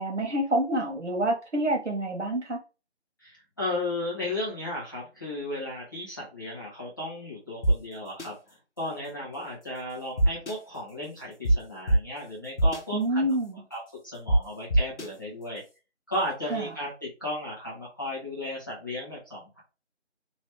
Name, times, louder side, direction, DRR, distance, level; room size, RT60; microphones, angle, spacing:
voice 1, 0.0-2.6 12.9-13.6 16.5-16.6, right 1 dB, 85° right, 1.3 m, -27 dB
voice 2, 3.2-13.3 13.7-15.6 16.1-19.6, left 1 dB, 20° left, 1.1 m, -35 dB
sound 1, 7.6-7.7 8.2-8.3 10.2-10.5 11.4-11.5 11.9-12.0 12.6-12.8 14.3-14.4 14.7-15.1, right 1 dB, 80° left, 1.0 m, -21 dB
3.0 x 3.0 x 3.2 m
figure-of-eight pair, 165°, 35 cm